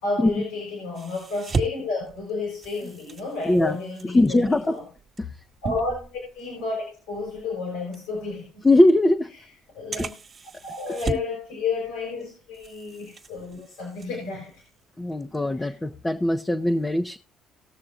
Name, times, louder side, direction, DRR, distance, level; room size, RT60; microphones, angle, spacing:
voice 1, 0.0-4.8 5.6-8.6 9.3-9.4 9.7-10.1 10.6-14.6 15.5-15.7, left 4 dB, 90° left, 4.9 m, -31 dB
sound 1, 0.9-6.7 7.1-7.3 7.9-8.0 8.9-9.0 9.9-11.4 11.8-12.2 12.5-14.7 15.1-15.4, right 4 dB, 40° right, 1.5 m, -36 dB
voice 2, 3.4-3.8 4.1-4.8 8.6-9.3 10.0-10.1 11.1-11.2 15.0-17.2, left 1 dB, 15° left, 0.7 m, -20 dB
20.0 x 6.7 x 2.5 m
supercardioid pair, 75°, 0 cm